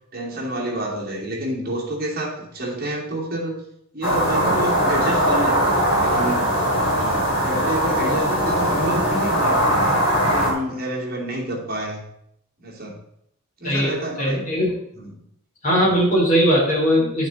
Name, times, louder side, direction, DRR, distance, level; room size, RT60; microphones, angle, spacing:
voice 1, 0.1-3.6 3.9-6.4 6.8-12.0 12.6-13.0 13.6-14.5 14.9-15.2, right 1 dB, 45° right, -3 dB, 2.5 m, -29 dB
sound 1, 4.0-10.5, equal, 70° left, 3.6 m, -20 dB
voice 2, 14.2-14.7 15.6-17.3, equal, 40° left, -4 dB, 3.8 m, -19 dB
10.0 x 6.5 x 4.1 m, 0.74 s
head